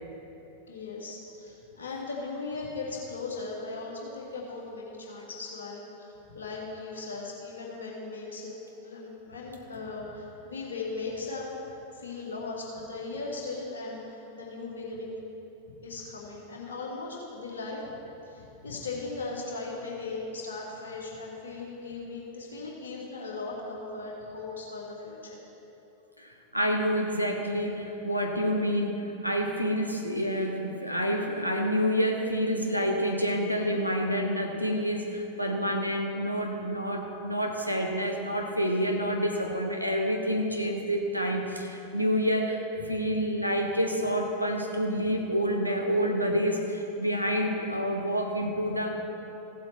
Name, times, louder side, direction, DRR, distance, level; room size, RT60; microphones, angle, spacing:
voice 1, 0.7-8.5 8.8-11.5 11.9-15.1 15.7-17.8 18.3-25.5, left 3 dB, 65° left, -3 dB, 2.3 m, -38 dB
voice 2, 26.2-42.6 42.8-48.9, equal, 90° right, 2 dB, 1.1 m, -28 dB
15.5 x 7.5 x 4.5 m, 3.0 s
figure-of-eight pair, 90°, 0 cm